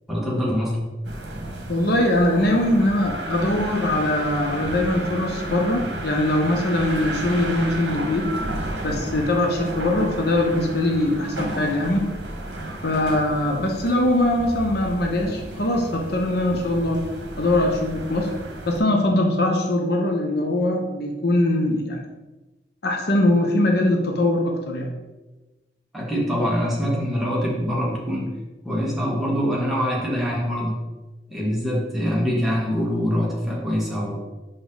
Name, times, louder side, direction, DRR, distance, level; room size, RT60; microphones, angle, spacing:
voice 1, 0.1-0.8 25.9-28.3 28.6-30.7 31.3-34.2, equal, ahead, -5 dB, 1.6 m, -24 dB
sound 1, 1.0-18.8, right 1 dB, 70° right, 1.2 m, -32 dB
voice 2, 1.7-8.3 8.8-12.1 12.8-17.0 17.4-18.3 18.7-22.0 22.8-24.9, left 1 dB, 60° left, 2 dB, 0.8 m, -22 dB
5.7 x 5.2 x 3.8 m, 1.1 s
head